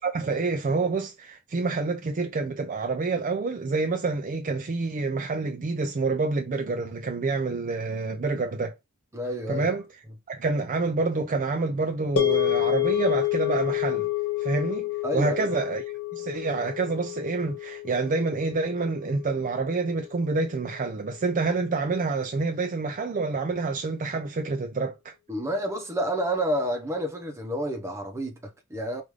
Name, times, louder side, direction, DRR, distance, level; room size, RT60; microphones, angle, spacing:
voice 1, 0.0-8.7 9.5-9.8 10.3-14.1 14.4-15.8 16.1-25.1, right 3 dB, 35° right, 0.4 m, -27 dB
voice 2, 9.1-9.7 15.0-15.5 25.3-29.0, equal, 10° right, 0.9 m, -29 dB
sound 1, 12.2-20.4, left 14 dB, 75° left, 1.5 m, -29 dB
4.9 x 2.6 x 3.2 m
head